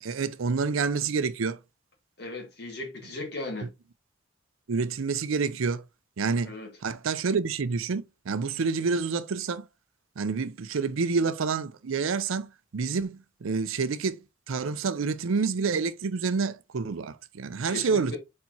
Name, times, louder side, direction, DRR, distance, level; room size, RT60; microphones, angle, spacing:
voice 1, 0.0-1.6 4.7-5.8 6.2-6.5 6.8-9.6 10.2-14.2 14.5-18.2, right 5 dB, 85° right, 0.5 m, -28 dB
voice 2, 2.2-3.7 6.4-6.7 17.7-18.2, left 2 dB, 55° left, 1.5 m, -36 dB
4.5 x 4.2 x 2.8 m
head